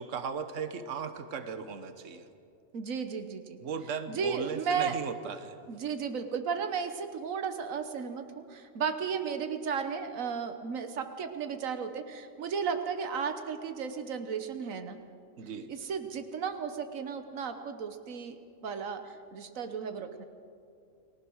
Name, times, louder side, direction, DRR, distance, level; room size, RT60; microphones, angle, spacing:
voice 1, 0.0-2.3 3.6-5.6 15.4-15.7, right 6 dB, 70° right, 9 dB, 1.4 m, -37 dB
voice 2, 2.7-3.6 4.1-5.0 5.7-15.0 15.7-20.2, right 6 dB, 90° right, 8 dB, 1.5 m, -34 dB
30.0 x 19.0 x 6.3 m, 2.5 s
omnidirectional pair, 1.4 m